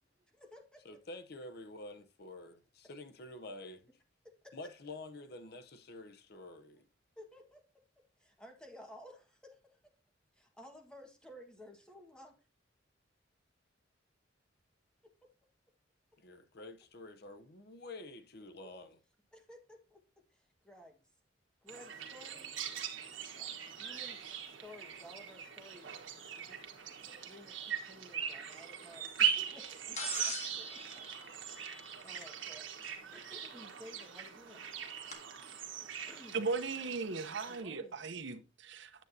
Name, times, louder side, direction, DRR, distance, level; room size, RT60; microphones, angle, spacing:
voice 1, 0.3-0.8 4.4-4.7 7.2-7.6 8.2-9.8 10.3-12.3 15.0-15.1 19.3-21.1 21.6-22.6 23.3-26.0 26.4-26.6 27.2-31.0 31.4-34.6 35.8-36.4 37.5-38.0, left 1 dB, 5° left, 1.5 m, -55 dB
voice 2, 0.8-3.9 4.5-6.8 16.2-19.0, left 2 dB, 55° left, 0.8 m, -48 dB
sound 1, 21.7-37.6, right 9 dB, 85° right, 1.4 m, -40 dB
sound 2, 30.0-32.3 33.8-33.9 35.1-35.2, left 3 dB, 40° left, 1.7 m, -43 dB
voice 3, 36.3-39.0, right 4 dB, 70° right, 0.8 m, -37 dB
9.2 x 7.8 x 2.7 m
head